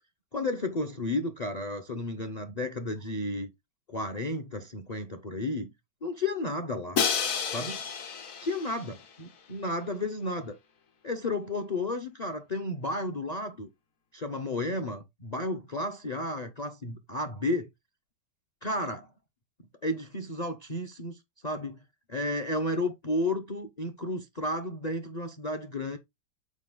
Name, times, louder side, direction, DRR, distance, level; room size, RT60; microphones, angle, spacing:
voice 1, 0.3-3.5 3.9-5.7 6.0-7.0 7.5-7.8 8.4-10.6 11.0-13.7 14.1-17.7 18.6-19.1 19.8-21.2 21.4-21.8 22.1-26.0, left 2 dB, 40° left, 0.6 m, -32 dB
Crash cymbal, 7.0-9.0, left 6 dB, 55° left, 1.3 m, -30 dB
6.3 x 4.9 x 3.8 m
omnidirectional pair, 1.9 m